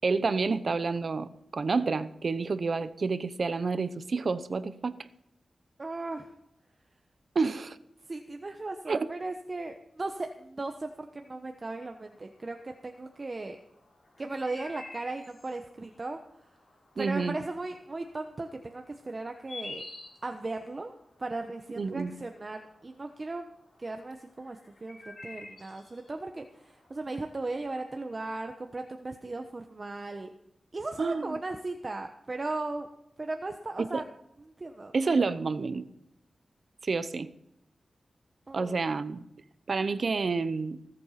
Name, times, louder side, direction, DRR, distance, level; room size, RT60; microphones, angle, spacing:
voice 1, 0.0-5.0 7.3-7.8 8.9-9.1 17.0-17.4 21.8-22.1 31.0-31.2 33.9-34.0 34.9-35.9 36.8-37.3 38.5-39.2 39.7-40.8, right 4 dB, 55° right, 14 dB, 0.8 m, -29 dB
voice 2, 5.8-6.3 8.0-13.6 14.2-16.2 17.0-19.8 20.2-20.9 21.2-23.5 23.8-30.3 30.7-32.9 33.2-34.0 34.4-34.9 38.5-38.8, right 2 dB, 35° right, 5 dB, 1.1 m, -37 dB
sound 1, 11.6-28.2, left 2 dB, 55° left, 4.8 m, -51 dB
19.5 x 7.9 x 5.8 m, 0.79 s
wide cardioid pair, 90°, 0 cm